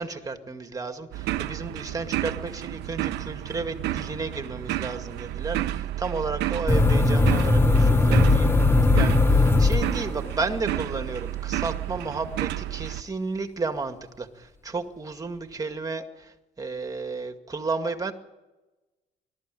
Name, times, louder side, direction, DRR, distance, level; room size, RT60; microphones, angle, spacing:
voice 1, 0.0-18.1, right 4 dB, 20° right, 7 dB, 2.1 m, -33 dB
sound 1, 1.1-13.0, right 14 dB, 85° right, 1.0 m, -31 dB
sound 2, 6.7-10.4, left 2 dB, 15° left, 1.0 m, -19 dB
21.0 x 13.5 x 9.3 m, 1.1 s
cardioid pair, 110°, 17 cm